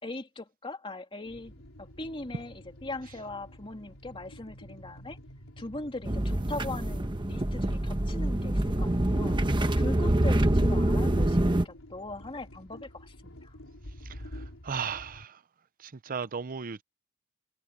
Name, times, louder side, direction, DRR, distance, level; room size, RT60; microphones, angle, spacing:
voice 1, 0.0-1.5 1.8-5.2 5.6-9.4 9.7-13.6, left 2 dB, 25° left, 2.6 m, -40 dB
sound 1, 1.3-15.3, equal, 80° left, 4.0 m, -48 dB
sound 2, 6.0-11.6, right 1 dB, 25° right, 1.1 m, -26 dB
voice 2, 14.3-15.4 15.8-16.8, right 6 dB, 45° right, 0.7 m, -36 dB
head